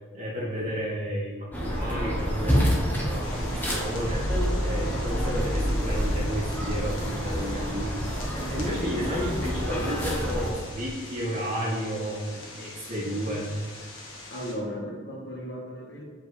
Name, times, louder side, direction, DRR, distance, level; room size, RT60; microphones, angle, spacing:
voice 1, 0.1-4.3 4.6-8.2 8.5-13.5, equal, 35° right, -6 dB, 1.9 m, -32 dB
sound 1, 1.5-10.5, equal, 10° left, 1.0 m, -28 dB
sound 2, 3.2-14.5, left 2 dB, 90° left, 1.4 m, -44 dB
voice 2, 14.3-16.0, equal, 60° left, -1 dB, 1.3 m, -36 dB
7.6 x 5.1 x 3.3 m, 1.4 s
head